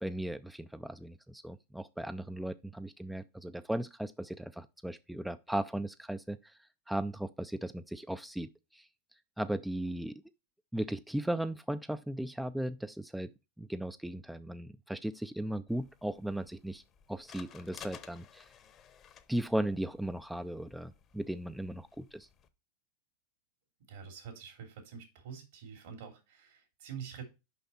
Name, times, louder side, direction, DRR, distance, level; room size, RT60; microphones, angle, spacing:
voice 1, 0.0-6.5 6.9-8.8 9.4-10.1 10.7-13.3 13.6-16.8 17.1-18.5 19.3-22.3, right 1 dB, 5° right, 0.4 m, -37 dB
sound 1, 15.7-22.5, left 8 dB, 35° left, 0.9 m, -55 dB
voice 2, 23.9-27.2, right 7 dB, 70° right, 3.0 m, -46 dB
5.7 x 5.4 x 4.2 m
hypercardioid pair, 115°, 0 cm